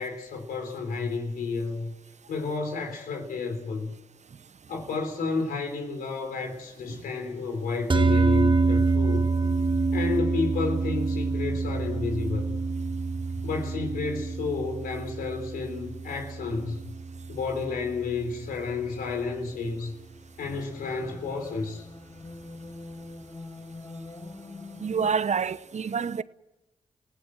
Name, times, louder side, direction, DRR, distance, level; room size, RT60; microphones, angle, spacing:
voice 1, 0.0-1.9 2.3-3.9 4.7-9.3 9.9-12.6 13.4-16.9 17.3-19.9 20.4-21.9, left 4 dB, 90° left, 3.9 m, -31 dB
sound 1, 6.4-25.1, left 2 dB, 35° left, 6.7 m, -47 dB
sound 2, 7.9-18.3, right 3 dB, 35° right, 1.8 m, -27 dB
voice 2, 24.8-26.2, right 6 dB, 50° right, 0.8 m, -27 dB
29.5 x 16.5 x 7.7 m
supercardioid pair, 50°, 15 cm